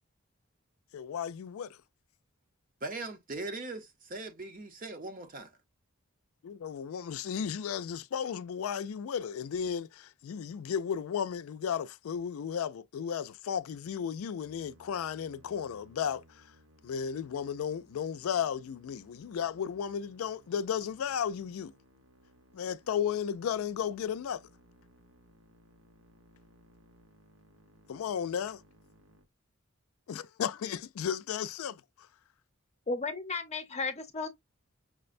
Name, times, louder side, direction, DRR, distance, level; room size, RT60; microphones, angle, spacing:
voice 1, 0.9-1.8 6.4-16.5 16.8-21.7 22.5-24.4 27.9-28.6 30.1-32.1, left 8 dB, 85° left, 0.3 m, -34 dB
voice 2, 2.8-5.6, right 2 dB, 40° right, 0.7 m, -40 dB
Musical instrument, 14.4-29.2, equal, 75° right, 1.2 m, -62 dB
voice 3, 32.9-34.3, left 3 dB, 30° left, 0.7 m, -34 dB
6.0 x 2.1 x 2.5 m
head